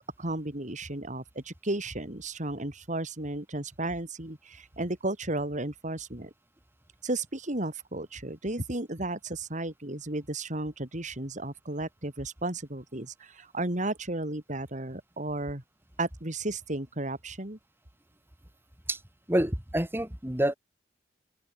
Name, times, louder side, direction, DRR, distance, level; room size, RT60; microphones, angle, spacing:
voice 1, 0.2-6.3 7.0-15.6 16.0-17.6, right 2 dB, 45° right, 3.2 m, -34 dB
voice 2, 19.3-20.5, right 1 dB, 10° right, 2.2 m, -27 dB
open air
head